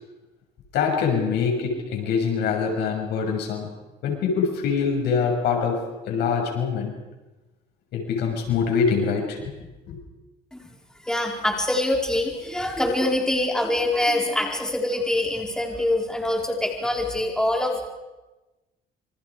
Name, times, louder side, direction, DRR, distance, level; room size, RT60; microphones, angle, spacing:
voice 1, 0.7-3.7 4.0-7.0 7.9-9.5 9.9-10.0, left 6 dB, 75° left, 2 dB, 6.8 m, -24 dB
voice 2, 11.0-17.9, left 1 dB, 5° left, 1 dB, 4.3 m, -24 dB
27.5 x 26.5 x 5.0 m, 1.1 s
cardioid pair, 110°, 17 cm